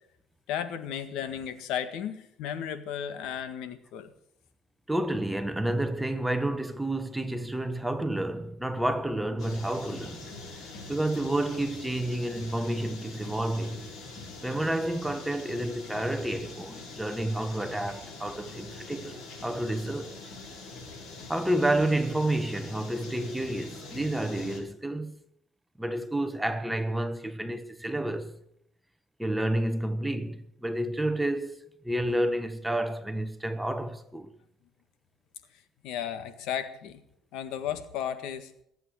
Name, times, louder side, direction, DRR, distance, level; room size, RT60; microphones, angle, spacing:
voice 1, 0.5-4.1 35.8-37.0 37.3-38.5, left 9 dB, 80° left, 1.6 m, -34 dB
voice 2, 4.9-10.3 10.6-13.8 14.4-20.2 21.3-25.1 25.8-28.3 29.2-34.3, right 1 dB, 5° right, 1.2 m, -30 dB
sound 1, 9.4-24.6, left 3 dB, 60° left, 5.9 m, -43 dB
20.5 x 8.3 x 6.4 m
cardioid pair, 100°, 0 cm